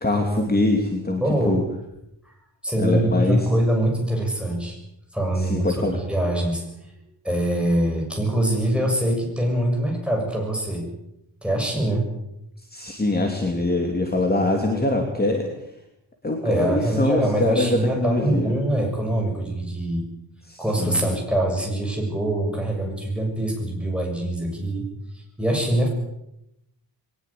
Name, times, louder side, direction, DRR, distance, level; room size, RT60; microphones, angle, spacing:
voice 1, 0.0-1.6 2.8-3.5 5.3-6.0 12.7-15.5 16.2-18.5 20.4-21.1, left 2 dB, 20° left, 2 dB, 2.8 m, -23 dB
voice 2, 1.2-1.6 2.6-4.8 5.1-6.6 7.2-10.9 11.4-12.1 16.4-20.1 20.6-24.9 25.1-25.9, right 1 dB, ahead, 0 dB, 6.9 m, -23 dB
22.0 x 19.5 x 8.5 m, 0.83 s
wide cardioid pair, 180°, 45 cm